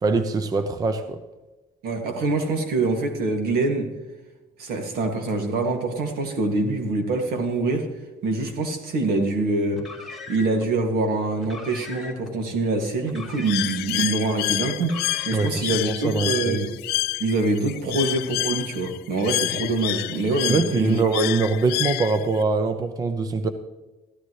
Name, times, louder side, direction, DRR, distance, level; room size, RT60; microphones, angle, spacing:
voice 1, 0.0-1.2 15.3-16.7 20.5-23.5, right 4 dB, 25° right, 10 dB, 0.6 m, -23 dB
voice 2, 1.8-3.9 4.6-7.9 8.2-9.8 10.3-15.0 15.3-16.7 17.2-21.0, right 3 dB, 70° right, 4 dB, 2.2 m, -25 dB
Car, 9.7-10.7 11.4-12.3 13.0-14.1 14.7-15.7, left 3 dB, ahead, 2.1 m, -40 dB
Bird, 13.5-22.4, left 18 dB, 80° left, 0.4 m, -29 dB
14.5 x 13.0 x 3.2 m, 1.1 s
cardioid pair, 155°, 16 cm